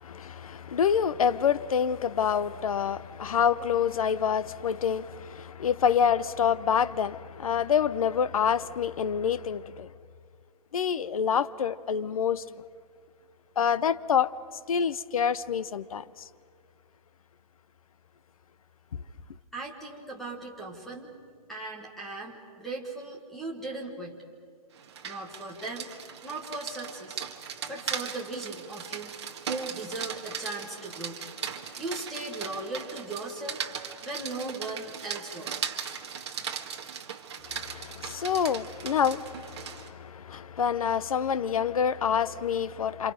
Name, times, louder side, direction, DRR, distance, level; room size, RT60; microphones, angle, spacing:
voice 1, 0.0-9.9 10.7-12.4 13.6-14.3 14.7-16.0 37.5-43.1, left 7 dB, 60° left, 0.8 m, -27 dB
voice 2, 19.5-21.2 21.5-24.2 25.0-25.9 26.2-27.2 27.7-29.1 29.5-31.2 31.8-33.6 34.0-35.7, right 2 dB, ahead, 1.5 m, -38 dB
Rain, 24.8-39.9, right 7 dB, 40° right, 1.6 m, -38 dB
28.5 x 27.0 x 5.1 m
hypercardioid pair, 180°, 21 cm